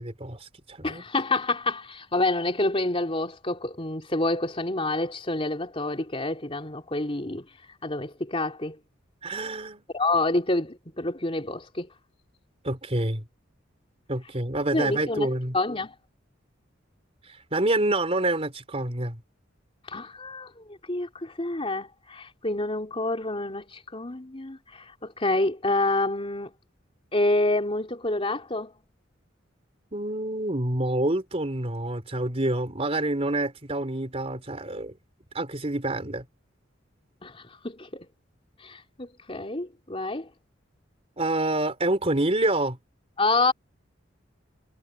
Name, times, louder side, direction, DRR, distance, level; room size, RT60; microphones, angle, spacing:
voice 1, 0.0-1.0 9.2-9.8 12.6-13.2 14.1-15.6 17.2-19.2 29.9-34.9 35.3-36.2 41.2-42.8, right 2 dB, 30° right, 4.0 m, -27 dB
voice 2, 0.8-7.5 7.8-8.8 9.9-11.9 14.7-15.3 15.5-15.9 19.9-20.5 20.9-26.5 27.1-28.7 37.2-38.1 38.6-40.3 43.2-43.5, left 2 dB, 30° left, 3.5 m, -28 dB
head